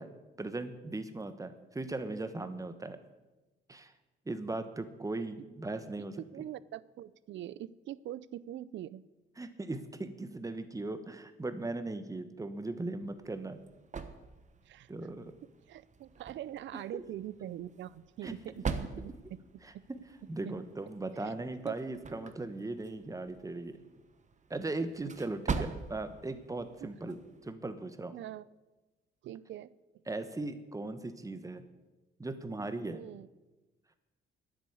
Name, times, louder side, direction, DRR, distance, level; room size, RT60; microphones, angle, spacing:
voice 1, 0.0-3.0 3.7-3.9 4.3-6.2 9.4-13.6 14.9-15.3 16.7-17.0 18.2-18.3 19.6-20.0 20.3-23.8 24.5-28.1 30.1-31.6 32.2-33.0, right 2 dB, 15° right, 10 dB, 1.2 m, -38 dB
voice 2, 6.3-9.0 14.6-14.9 15.7-19.4 20.4-20.5 21.2-21.4 21.6-21.8 26.8-26.9 28.1-28.5 29.2-29.7 32.9-33.3, right 12 dB, 70° right, 19 dB, 0.5 m, -43 dB
sound 1, 13.0-27.5, right 5 dB, 35° right, 1.1 m, -43 dB
10.0 x 8.8 x 8.2 m, 1.1 s
cardioid pair, 90°, 20 cm